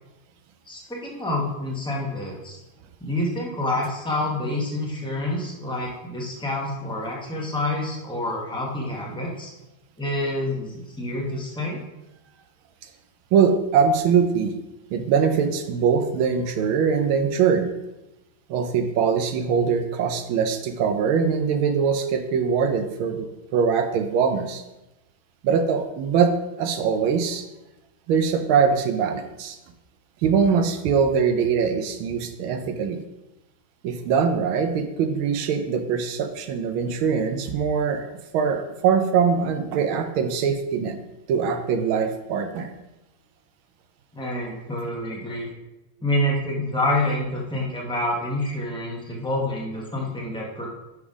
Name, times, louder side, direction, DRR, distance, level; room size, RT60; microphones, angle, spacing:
voice 1, 0.7-2.6 3.0-9.5 10.0-11.8 44.1-45.5 46.0-50.7, left 1 dB, 10° left, -3 dB, 0.3 m, -27 dB
voice 2, 13.3-14.5 14.9-17.7 18.5-24.6 25.4-27.4 28.1-29.6 30.2-33.0 33.8-41.0 41.3-42.7, right 6 dB, 80° right, 7 dB, 1.5 m, -22 dB
5.3 x 5.0 x 4.8 m, 0.97 s
omnidirectional pair, 2.2 m